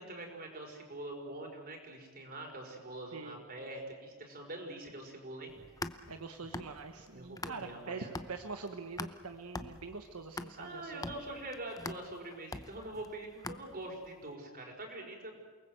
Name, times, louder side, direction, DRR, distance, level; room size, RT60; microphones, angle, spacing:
voice 1, 0.0-5.5 7.1-8.1 10.6-15.3, right 1 dB, 45° right, 1 dB, 5.3 m, -44 dB
sound 1, 5.5-7.8 8.2-14.1, left 2 dB, 15° left, 0.8 m, -44 dB
voice 2, 6.1-11.2, right 4 dB, 80° right, 6 dB, 1.2 m, -44 dB
28.5 x 20.0 x 7.9 m, 1.5 s
head